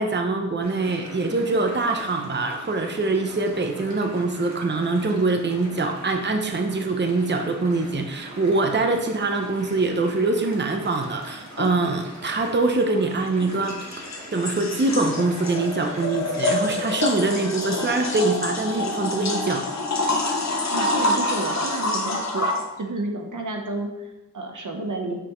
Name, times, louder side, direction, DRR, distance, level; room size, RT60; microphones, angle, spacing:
voice 1, 0.0-14.1 14.3-19.6, right 3 dB, 35° right, 4 dB, 0.7 m, -24 dB
sound 1, 0.6-17.5, right 1 dB, 65° right, 1.7 m, -42 dB
sound 2, 11.6-11.7 13.4-22.6, left 2 dB, 60° left, 0.8 m, -26 dB
voice 2, 20.7-22.5 22.7-25.2, right 2 dB, 85° right, 2 dB, 0.9 m, -31 dB
6.0 x 5.5 x 3.1 m, 0.97 s
wide cardioid pair, 60°, 30 cm